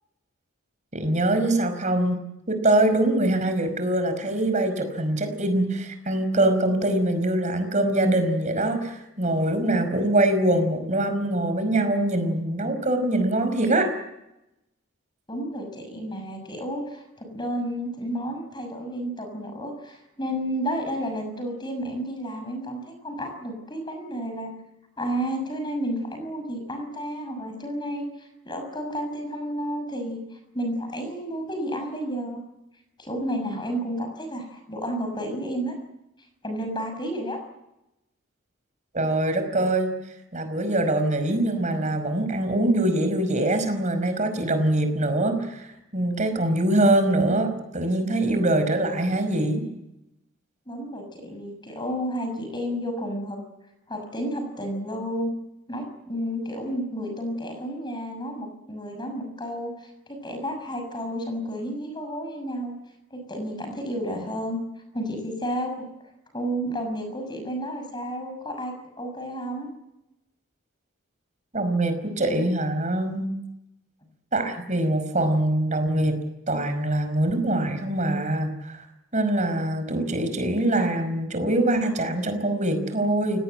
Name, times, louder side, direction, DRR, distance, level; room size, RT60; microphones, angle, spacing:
voice 1, 0.9-13.9 38.9-39.9 40.3-49.7 71.5-73.4 74.3-76.2 76.5-78.8 79.1-83.4, right 1 dB, 35° right, 8 dB, 5.2 m, -23 dB
voice 2, 15.3-24.5 25.0-30.2 30.5-32.4 33.0-35.7 36.4-37.4 50.7-53.4 53.9-55.3 55.7-62.7 63.1-64.6 64.9-65.7 66.3-69.7, equal, 20° left, 5 dB, 6.3 m, -31 dB
29.5 x 18.5 x 7.9 m, 0.90 s
head